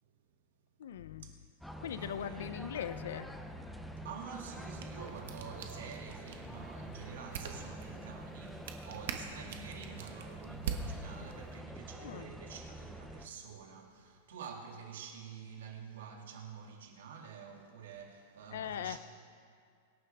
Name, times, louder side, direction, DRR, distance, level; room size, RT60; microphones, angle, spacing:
voice 1, 0.8-1.3 1.8-3.3 12.0-12.3 18.5-19.0, left 9 dB, 80° left, 0.5 m, -40 dB
sound 1, 1.6-13.3, right 1 dB, ahead, 0.5 m, -47 dB
voice 2, 2.0-2.5 4.0-19.0, right 7 dB, 85° right, 2.3 m, -48 dB
sound 2, 2.9-10.0, left 4 dB, 55° left, 1.8 m, -61 dB
sound 3, 4.5-11.6, right 6 dB, 60° right, 1.4 m, -45 dB
24.0 x 11.0 x 3.5 m
supercardioid pair, 175°, 0 cm